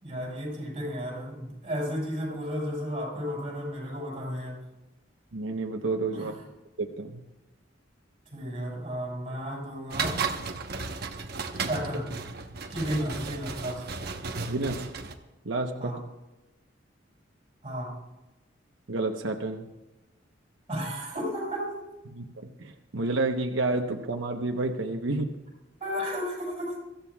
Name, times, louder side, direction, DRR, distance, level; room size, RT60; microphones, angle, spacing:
voice 1, 0.0-4.6 6.1-6.3 8.3-10.3 11.6-12.1 12.7-13.9 15.8-16.0 17.6-18.0 20.7-21.8 25.8-26.8, equal, 30° right, -3 dB, 6.1 m, -33 dB
voice 2, 5.3-6.3 6.8-7.2 14.5-14.9 15.4-16.0 18.9-19.6 22.1-25.4, right 2 dB, 90° right, 3 dB, 1.0 m, -30 dB
sound 1, 9.9-15.1, right 4 dB, 55° right, 1.1 m, -34 dB
24.0 x 14.5 x 2.4 m, 1.0 s
head